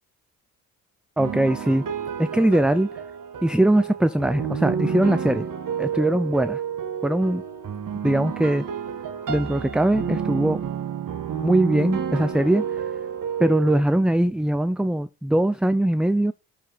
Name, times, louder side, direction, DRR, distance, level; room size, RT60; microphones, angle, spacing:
voice 1, 1.2-1.8 2.2-2.9 3.4-5.5 5.8-6.6 7.0-7.4 8.0-8.7 9.3-10.6 11.4-12.6 13.4-16.3, right 1 dB, ahead, 0.5 m, -21 dB
sound 1, 1.2-13.8, right 7 dB, 55° right, 1.6 m, -30 dB
7.0 x 5.4 x 5.6 m
supercardioid pair, 55°, 39 cm